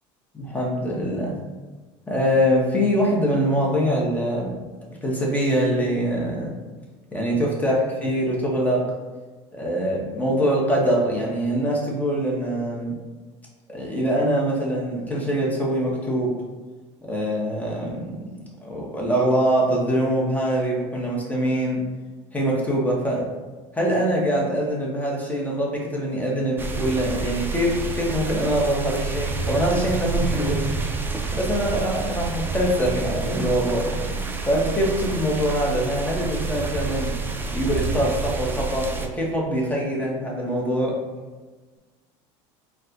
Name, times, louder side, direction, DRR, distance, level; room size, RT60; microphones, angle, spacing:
voice 1, 0.3-1.4 2.1-4.6 5.0-6.5 7.1-8.8 9.5-13.0 13.7-16.3 17.1-18.1 18.6-21.8 22.3-23.2 23.7-30.6 31.3-37.1 37.5-41.0, equal, 10° left, -3 dB, 0.9 m, -23 dB
sound 1, 26.6-39.1, right 4 dB, 15° right, 0.3 m, -28 dB
4.1 x 2.2 x 2.5 m, 1.3 s
supercardioid pair, 110°, 15 cm